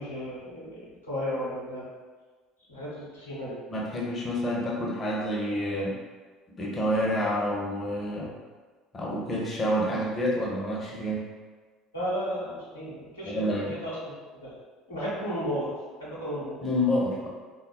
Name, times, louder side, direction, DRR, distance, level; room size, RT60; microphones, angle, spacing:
voice 1, 0.0-1.9 2.7-3.5 11.9-14.1 14.4-14.5 14.9-15.7 16.0-16.6, equal, 85° left, -9 dB, 0.9 m, -34 dB
voice 2, 3.7-6.0 6.6-8.3 8.9-11.2 13.3-13.7 16.6-17.3, equal, 25° left, -4 dB, 0.6 m, -28 dB
3.5 x 2.3 x 2.3 m, 1.4 s
figure-of-eight pair, 60°, 0 cm